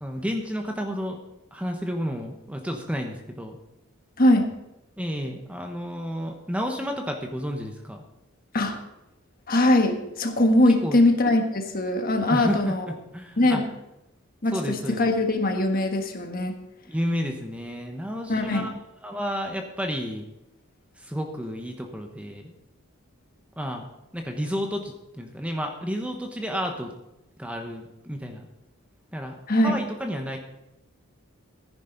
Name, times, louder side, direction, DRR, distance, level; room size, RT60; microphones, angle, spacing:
voice 1, 0.0-1.2 1.5-3.6 5.0-8.0 10.8-11.0 12.3-13.6 14.5-15.0 16.9-18.7 19.0-20.2 21.0-22.5 23.6-23.8 24.1-26.9 27.4-28.5 29.1-29.4 29.6-30.4, equal, 5° right, 3 dB, 1.0 m, -31 dB
voice 2, 9.5-12.8 13.4-13.6 14.4-16.5 18.3-18.7 29.5-29.8, left 1 dB, 45° left, 4 dB, 1.4 m, -21 dB
15.0 x 10.0 x 4.0 m, 0.88 s
head